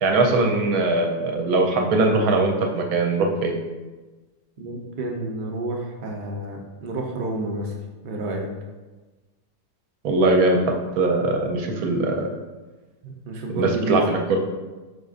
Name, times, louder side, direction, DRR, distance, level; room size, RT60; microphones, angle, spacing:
voice 1, 0.0-3.6 10.0-12.3 13.5-14.4, right 2 dB, 70° right, 2 dB, 1.0 m, -21 dB
voice 2, 4.6-7.7 8.0-8.5 13.0-14.0, right 1 dB, 90° right, 0 dB, 0.4 m, -29 dB
5.0 x 4.1 x 2.4 m, 1.2 s
omnidirectional pair, 1.8 m